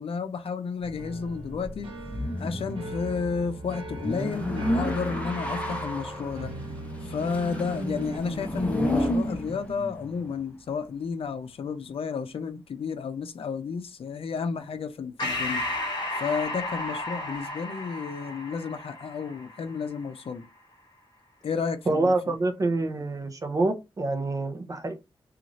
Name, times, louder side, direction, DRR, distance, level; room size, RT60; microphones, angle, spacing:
voice 1, 0.0-1.9 2.4-6.5 7.1-15.6 16.1-20.4 21.4-22.1, left 5 dB, 80° left, 0.5 m, -32 dB
sound 1, 0.8-10.5, left 1 dB, 15° left, 0.7 m, -32 dB
sound 2, 0.8-8.2, right 1 dB, 75° right, 1.1 m, -39 dB
Breathing, 15.2-20.1, left 2 dB, 50° left, 1.1 m, -33 dB
voice 2, 21.9-25.0, right 2 dB, 35° right, 0.5 m, -26 dB
2.6 x 2.4 x 2.9 m
wide cardioid pair, 155°, 10 cm